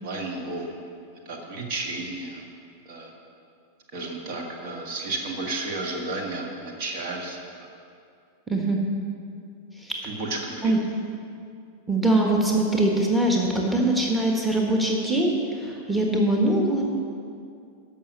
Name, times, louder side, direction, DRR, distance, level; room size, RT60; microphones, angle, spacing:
voice 1, 0.0-0.7 1.3-2.4 2.8-3.1 3.9-7.4 10.0-10.7, right 2 dB, 45° right, 1 dB, 1.6 m, -32 dB
voice 2, 8.5-8.8 9.8-10.0 10.6-10.8 11.9-16.9, right 1 dB, 5° right, -1 dB, 1.5 m, -22 dB
13.0 x 5.9 x 6.5 m, 2.4 s
figure-of-eight pair, 90°, 0 cm